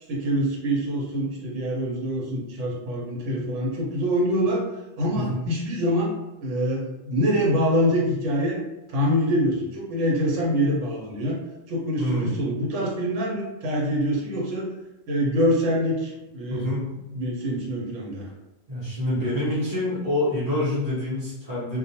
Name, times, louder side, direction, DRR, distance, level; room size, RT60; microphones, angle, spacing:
voice 1, 0.1-4.6 5.0-6.1 6.4-8.6 8.9-11.4 11.7-14.7 15.1-16.8 17.1-18.3, equal, 75° right, -3 dB, 1.0 m, -25 dB
voice 2, 12.0-12.3 16.5-16.9 18.7-21.8, left 1 dB, 35° right, -8 dB, 0.9 m, -26 dB
2.4 x 2.1 x 2.7 m, 1.0 s
omnidirectional pair, 1.3 m